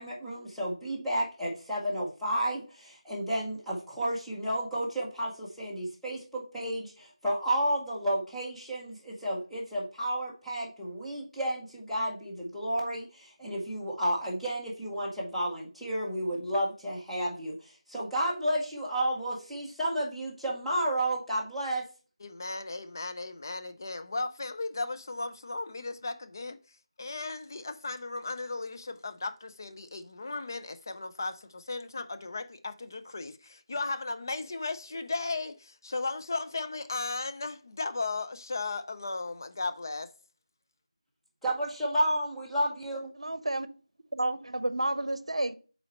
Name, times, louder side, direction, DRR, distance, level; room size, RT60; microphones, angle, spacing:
voice 1, 0.0-21.8 41.4-43.1, right 1 dB, ahead, 0.8 m, -31 dB
voice 2, 22.2-26.6 27.0-40.1, left 3 dB, 35° left, 0.5 m, -36 dB
voice 3, 43.2-43.7 44.1-45.5, right 1 dB, 70° right, 0.7 m, -30 dB
5.6 x 4.2 x 4.2 m
figure-of-eight pair, 165°, 3 cm